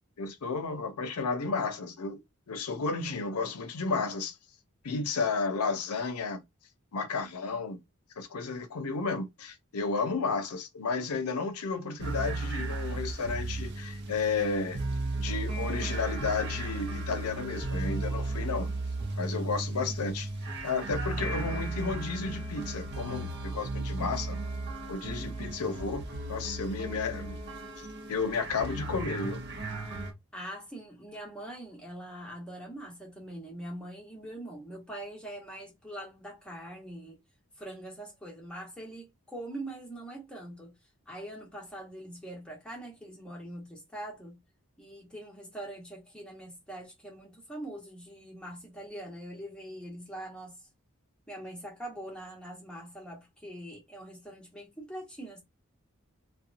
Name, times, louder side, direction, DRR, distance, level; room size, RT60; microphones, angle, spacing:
voice 1, 0.2-2.2 2.5-4.4 4.8-6.4 6.9-7.8 8.2-14.8 15.2-18.7 19.2-20.3 20.6-24.4 24.9-26.0 26.3-27.4 27.8-29.4, left 4 dB, 85° left, 0.6 m, -32 dB
sound 1, 12.0-30.1, right 2 dB, 50° right, 0.6 m, -35 dB
voice 2, 30.3-37.2 37.6-40.7 41.1-44.4 44.8-50.6 51.3-55.4, right 1 dB, 5° left, 0.9 m, -43 dB
2.8 x 2.2 x 2.5 m
head